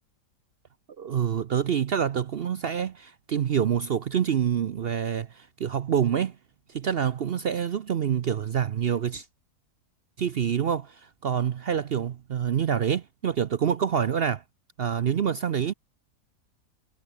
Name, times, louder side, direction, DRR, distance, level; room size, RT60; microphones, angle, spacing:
voice 1, 1.0-6.4 6.7-9.2 10.2-14.4 14.8-15.7, right 8 dB, 65° right, 0.6 m, -26 dB
omnidirectional pair, 1.8 m